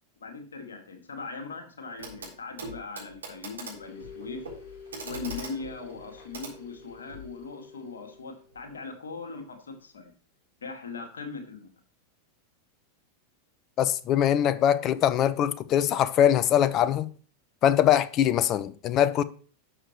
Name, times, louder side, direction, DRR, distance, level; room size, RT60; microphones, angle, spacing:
voice 1, 0.2-4.4 5.0-10.1 10.6-11.7, left 4 dB, 70° left, 2.0 m, -40 dB
Clock, 2.0-2.3 2.6-7.3 8.5-8.6, right 2 dB, 70° right, 3.9 m, -42 dB
sound 1, 3.7-8.6, left 5 dB, 50° left, 3.5 m, -48 dB
voice 2, 13.8-17.1 17.6-19.2, left 10 dB, 35° left, 0.6 m, -22 dB
12.0 x 6.5 x 3.1 m
figure-of-eight pair, 90°, 0 cm